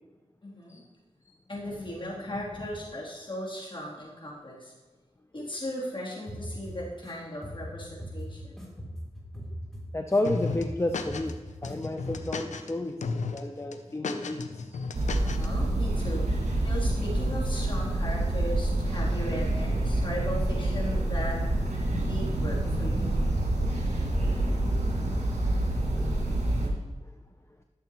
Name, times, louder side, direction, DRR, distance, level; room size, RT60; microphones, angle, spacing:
voice 1, 0.4-0.8 1.5-4.7 5.3-8.6 15.2-16.2 16.6-21.4 21.9-23.2, equal, 45° left, -5 dB, 3.0 m, -37 dB
sound 1, 6.3-7.1 7.4-10.2 10.5-11.7 12.0-12.4, equal, 5° left, 2.9 m, -40 dB
voice 2, 9.9-11.4 11.6-14.8 25.9-26.3, left 1 dB, 20° left, 5 dB, 0.6 m, -32 dB
sound 2, 10.2-11.3 11.6-12.7 13.0-13.4 13.7-15.5, left 4 dB, 85° left, 0.5 m, -34 dB
sound 3, 14.9-26.7, right 1 dB, 70° right, 1.9 m, -27 dB
12.5 x 6.9 x 3.0 m, 1.3 s
cardioid pair, 45°, 12 cm